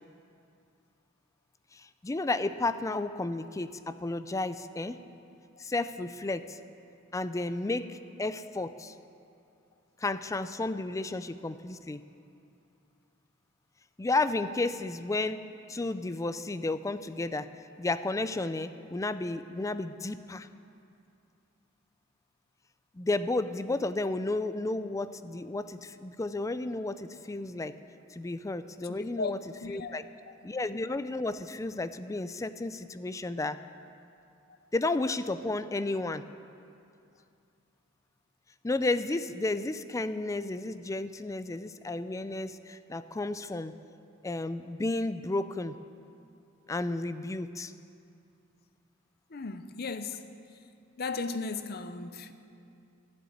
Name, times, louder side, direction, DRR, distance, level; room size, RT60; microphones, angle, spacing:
voice 1, 1.7-5.1 5.6-6.6 7.1-8.9 10.0-12.0 14.0-17.5 17.8-20.5 22.9-27.7 28.1-29.4 29.7-30.0 30.4-33.6 34.7-36.2 38.6-43.7 44.2-45.8 46.7-47.7, left 2 dB, 15° left, 0.4 m, -32 dB
voice 2, 28.8-29.3 29.6-30.0 30.3-30.4 49.3-50.2 51.0-52.3, left 4 dB, 55° left, 0.7 m, -36 dB
12.5 x 7.9 x 9.7 m
head